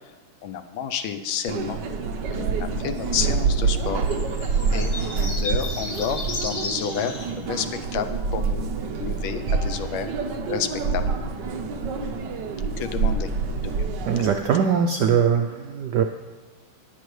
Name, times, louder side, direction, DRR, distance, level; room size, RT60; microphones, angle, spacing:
voice 1, 0.4-1.8 2.3-4.1 4.7-8.7 9.0-10.1 10.5-11.1 12.8-13.3 13.6-13.8 14.2-14.3 15.3-15.4, left 8 dB, 75° left, 10 dB, 1.3 m, -30 dB
sound 1, 1.5-14.4, right 4 dB, 65° right, 1.3 m, -27 dB
sound 2, 2.8-3.3 3.9-7.3 7.7-7.8, left 2 dB, 55° left, 2.1 m, -34 dB
voice 2, 14.1-16.0, right 7 dB, 80° right, 5 dB, 0.9 m, -21 dB
19.5 x 6.7 x 3.2 m, 1.2 s
omnidirectional pair, 2.4 m